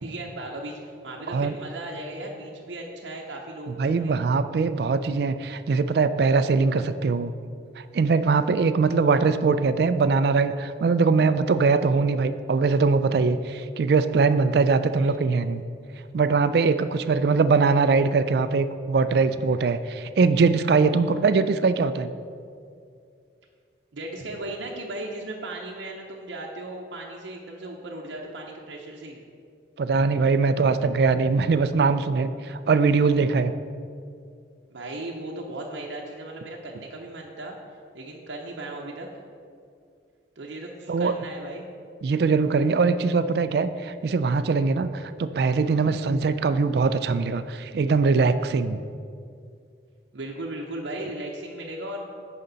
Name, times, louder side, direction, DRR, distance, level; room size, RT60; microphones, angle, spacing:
voice 1, 0.0-4.1 15.0-15.2 23.9-29.2 34.7-37.6 37.9-39.1 40.4-41.7 42.6-42.7 50.1-52.0, right 1 dB, 75° right, -1 dB, 0.7 m, -36 dB
voice 2, 3.8-7.3 7.9-15.6 16.1-22.1 29.8-33.5 40.9-41.1 42.0-48.8, right 4 dB, 60° right, 12 dB, 0.3 m, -22 dB
9.7 x 5.1 x 4.0 m, 2.3 s
head